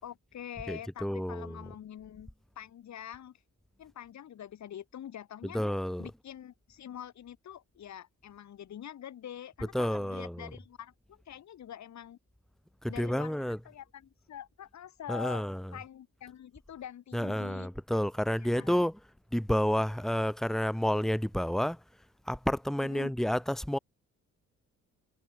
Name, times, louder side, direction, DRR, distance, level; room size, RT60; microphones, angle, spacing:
voice 1, 0.0-2.3 2.6-3.4 3.8-5.6 6.0-12.2 12.9-15.4 15.7-17.7 18.4-18.8 22.8-23.1, left 10 dB, 65° left, 4.5 m, -45 dB
voice 2, 0.7-1.7 5.4-6.1 9.6-10.6 12.8-13.6 15.1-15.8 17.1-19.0 19.3-21.8 22.3-23.8, equal, ahead, 2.5 m, -30 dB
cardioid pair, 90°, 30 cm